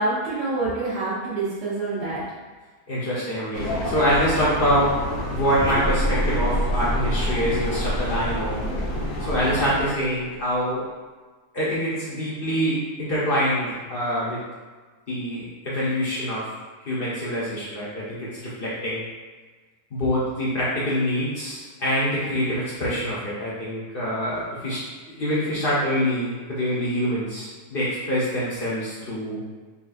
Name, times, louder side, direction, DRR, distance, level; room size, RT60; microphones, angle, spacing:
voice 1, 0.0-2.2, right 2 dB, 80° right, -10 dB, 1.4 m, -26 dB
voice 2, 2.9-4.9 5.3-8.6 9.2-10.8 11.5-14.4 15.1-16.5 16.9-19.0 19.9-24.8 25.2-29.4, equal, 50° left, -8 dB, 0.6 m, -25 dB
sound 1, 3.5-9.8, left 1 dB, 70° left, 1.1 m, -29 dB
sound 2, 5.6-10.2, equal, 5° left, 0.4 m, -29 dB
3.9 x 2.4 x 2.4 m, 1.4 s
omnidirectional pair, 1.7 m